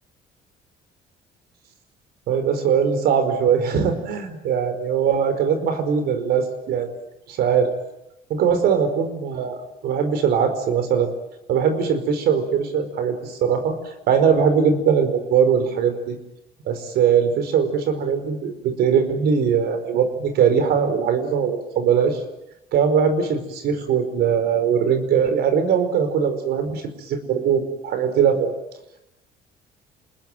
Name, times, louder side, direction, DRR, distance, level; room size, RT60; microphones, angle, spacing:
voice 1, 2.3-6.9 7.3-7.7 8.3-9.6 9.8-11.1 11.5-13.8 14.1-16.2 16.7-22.2 22.7-28.5, right 7 dB, 75° right, 9 dB, 5.0 m, -21 dB
28.0 x 21.0 x 9.3 m, 0.90 s
cardioid pair, 110°, 17 cm